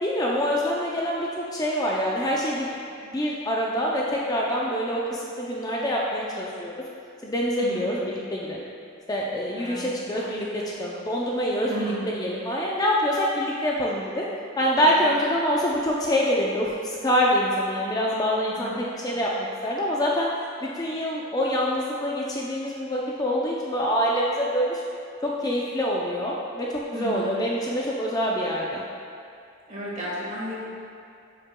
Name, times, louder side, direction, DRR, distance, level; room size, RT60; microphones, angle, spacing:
voice 1, 0.0-2.8 3.0-6.7 7.2-8.6 9.1-14.2 14.6-20.3 20.6-24.8 25.2-28.8, equal, 20° left, -3 dB, 0.5 m, -25 dB
voice 2, 7.6-8.0 9.4-10.3 11.6-12.2 14.7-15.1 18.5-18.9 26.9-27.4 29.7-30.5, right 1 dB, 35° right, -6 dB, 1.6 m, -34 dB
9.2 x 5.8 x 2.2 m, 2.4 s
head